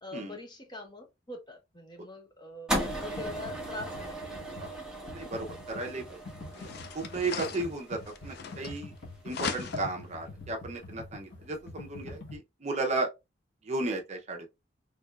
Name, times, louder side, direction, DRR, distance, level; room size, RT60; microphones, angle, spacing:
voice 1, 0.0-4.4, left 2 dB, 25° left, 0.8 m, -44 dB
sound 1, 2.7-9.0, right 1 dB, 5° right, 1.0 m, -38 dB
Computer keyboard, 2.9-12.4, left 2 dB, 90° left, 1.4 m, -44 dB
voice 2, 5.1-6.2 6.5-8.9 9.2-13.1 13.6-14.5, right 2 dB, 35° right, 0.7 m, -34 dB
sound 2, 5.8-5.9 6.5-9.0 9.3-10.1, left 5 dB, 60° left, 0.4 m, -39 dB
3.4 x 3.2 x 2.4 m
head